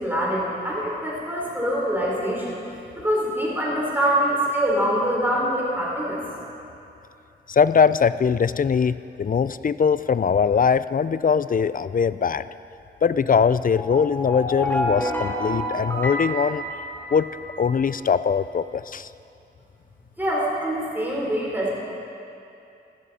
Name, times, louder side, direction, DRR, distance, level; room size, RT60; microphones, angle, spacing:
voice 1, 0.0-2.5 3.0-6.2 20.2-21.7, equal, 10° right, -5 dB, 4.0 m, -24 dB
voice 2, 7.5-12.4 13.0-16.6 17.1-17.3 17.6-19.1, left 6 dB, 45° left, 15 dB, 0.4 m, -21 dB
sound 1, 13.7-17.7, equal, 10° left, 2.0 m, -29 dB
14.5 x 13.5 x 4.2 m, 2.7 s
wide cardioid pair, 65°, 19 cm